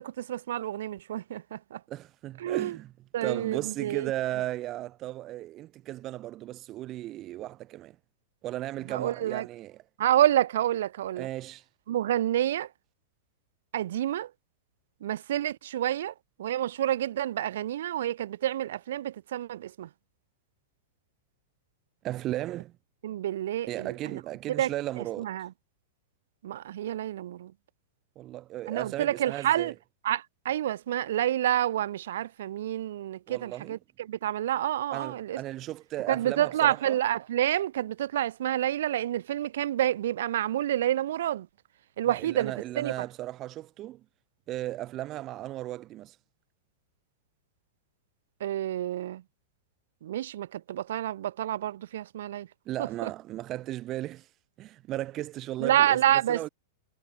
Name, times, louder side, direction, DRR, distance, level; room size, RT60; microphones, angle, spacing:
voice 1, 0.0-1.8 2.4-2.8 3.1-4.1 8.9-9.4 10.0-11.3 11.9-12.7 13.7-14.3 15.0-16.1 16.4-19.9 23.0-24.2 24.5-24.7 25.2-25.5 26.4-27.5 28.7-29.7 30.0-35.4 36.1-41.5 42.0-42.9 48.4-49.2 50.0-52.5 52.8-53.1 55.6-56.5, right 12 dB, 70° right, 0.6 m, -28 dB
voice 2, 1.9-2.9 3.2-8.0 8.4-9.8 11.2-11.6 22.0-22.7 23.7-25.3 28.2-29.7 33.3-33.8 34.9-37.0 42.0-44.0 44.5-46.2 52.7-54.3 54.6-56.5, right 15 dB, 25° right, 0.3 m, -36 dB
supercardioid pair, 170°, 0 cm